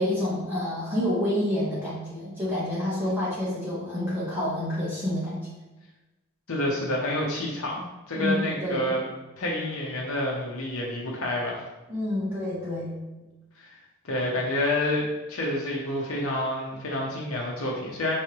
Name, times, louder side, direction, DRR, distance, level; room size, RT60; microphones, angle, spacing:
voice 1, 0.0-5.5 8.2-8.9 11.9-13.0, left 1 dB, 10° right, -9 dB, 1.1 m, -28 dB
voice 2, 6.5-9.1 9.4-11.6 13.6-13.8 14.0-18.1, left 1 dB, 75° left, -3 dB, 0.8 m, -28 dB
5.6 x 3.2 x 2.9 m, 1.1 s
head